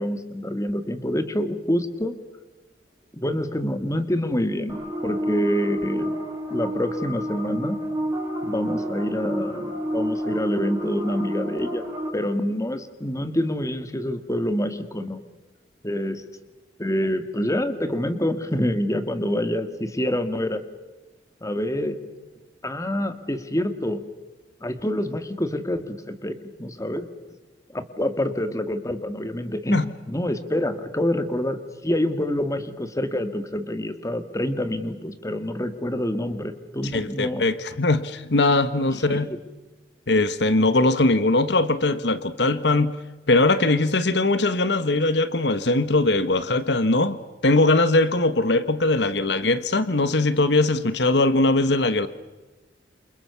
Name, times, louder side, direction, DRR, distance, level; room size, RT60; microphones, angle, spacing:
voice 1, 0.0-2.2 3.1-6.2 6.5-7.8 8.4-11.9 12.1-15.2 15.8-16.2 16.8-20.6 21.4-22.0 22.6-24.0 24.6-27.1 27.7-37.4 38.9-39.4, left 1 dB, 20° left, 9 dB, 1.9 m, -27 dB
sound 1, 4.7-12.1, equal, 20° right, 6.2 m, -29 dB
voice 2, 36.9-39.3 40.1-43.0 43.3-52.1, left 2 dB, 70° left, 13 dB, 1.2 m, -21 dB
28.5 x 28.0 x 7.0 m, 1.2 s
head